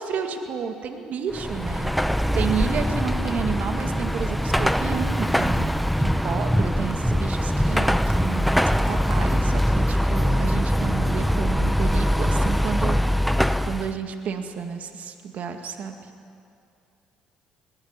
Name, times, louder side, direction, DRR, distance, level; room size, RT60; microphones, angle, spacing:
voice 1, 0.0-1.9 2.3-13.0 13.7-16.0, right 7 dB, 60° right, 5 dB, 2.1 m, -31 dB
Car passing by / Traffic noise roadway noise / Engine, 1.3-13.9, equal, ahead, 0.9 m, -22 dB
20.5 x 17.0 x 9.9 m, 2.4 s
hypercardioid pair, 60°, 3 cm